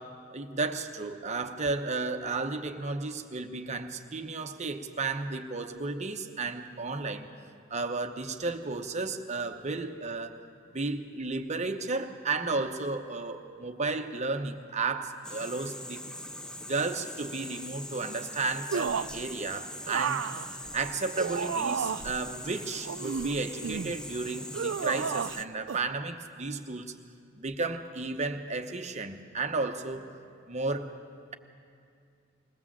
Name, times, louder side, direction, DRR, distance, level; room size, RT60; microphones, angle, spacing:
voice 1, 0.0-7.3 7.7-10.4 10.7-16.0 16.7-20.2 20.7-26.9 27.4-30.0 30.5-30.9, right 3 dB, 35° right, 6 dB, 0.9 m, -33 dB
sound 1, 15.2-25.4, left 1 dB, 5° left, 0.4 m, -42 dB
sound 2, 18.7-19.2 19.9-22.2 22.8-23.9 24.5-25.4 25.7-25.8, right 6 dB, 70° right, 0.4 m, -32 dB
21.0 x 17.5 x 7.3 m, 2.4 s
head